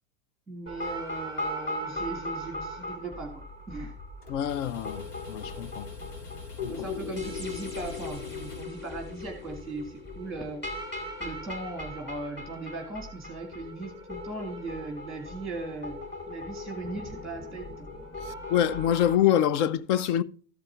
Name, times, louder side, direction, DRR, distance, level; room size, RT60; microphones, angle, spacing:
voice 1, 0.5-3.9 6.7-10.6 11.2-16.0 16.3-17.9, right 2 dB, ahead, 1.8 m, -38 dB
sound 1, 0.7-19.1, left 2 dB, 20° left, 2.1 m, -38 dB
sound 2, 4.2-9.4, left 4 dB, 80° left, 2.6 m, -44 dB
voice 2, 4.3-5.9 6.6-6.9 18.3-20.2, left 10 dB, 50° left, 0.6 m, -26 dB
13.5 x 5.2 x 4.5 m
supercardioid pair, 145°, 46 cm